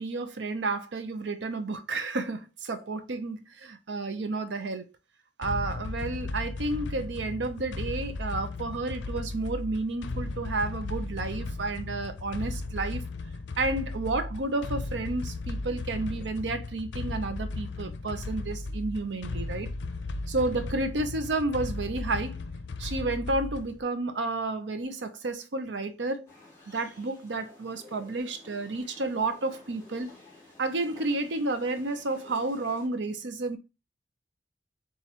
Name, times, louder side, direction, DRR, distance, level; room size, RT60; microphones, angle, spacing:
voice 1, 0.0-4.9 5.4-13.0 13.6-19.7 20.3-22.4 22.8-26.3 26.7-30.1 30.6-33.6, right 2 dB, 85° right, 0.7 m, -31 dB
sound 1, 5.4-23.8, left 2 dB, 80° left, 0.5 m, -36 dB
sound 2, 26.3-32.9, left 2 dB, 15° left, 2.3 m, -53 dB
7.2 x 2.5 x 2.9 m
head